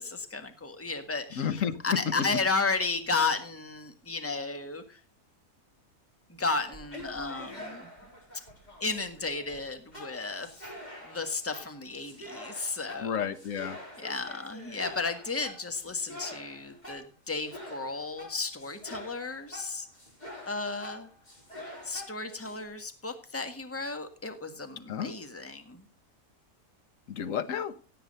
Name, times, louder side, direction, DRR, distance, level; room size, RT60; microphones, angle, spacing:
voice 1, 0.0-5.0 6.3-7.9 8.8-10.7 11.0-13.3 14.0-19.9 20.5-21.1 21.8-25.8, left 3 dB, 10° left, 7 dB, 1.5 m, -33 dB
voice 2, 1.4-1.8 13.0-13.8 24.9-25.1 27.1-27.7, left 8 dB, 65° left, 11 dB, 1.5 m, -31 dB
sound 1, 6.6-22.6, left 1 dB, 30° left, 4.3 m, -46 dB
16.5 x 8.5 x 5.4 m, 0.36 s
omnidirectional pair, 1.5 m